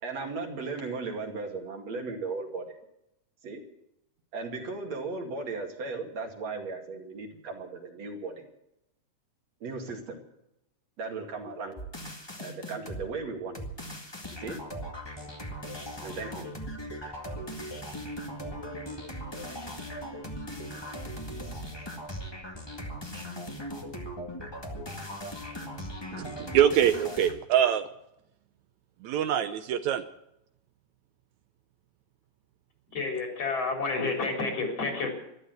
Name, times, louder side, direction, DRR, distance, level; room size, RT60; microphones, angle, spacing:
voice 1, 0.0-2.8 3.4-3.6 4.3-8.5 9.6-10.2 11.0-11.8 12.4-13.6 14.4-14.6 16.0-16.5 17.3-17.6, right 4 dB, 60° right, 2 dB, 3.4 m, -36 dB
sound 1, 11.8-13.1 13.5-27.3, equal, 10° left, 1.4 m, -39 dB
voice 2, 26.1-27.8 29.0-30.0, right 10 dB, 75° right, 10 dB, 2.0 m, -24 dB
voice 3, 32.9-35.1, left 3 dB, 50° left, 2 dB, 5.1 m, -30 dB
13.5 x 12.5 x 7.8 m, 0.83 s
omnidirectional pair, 3.5 m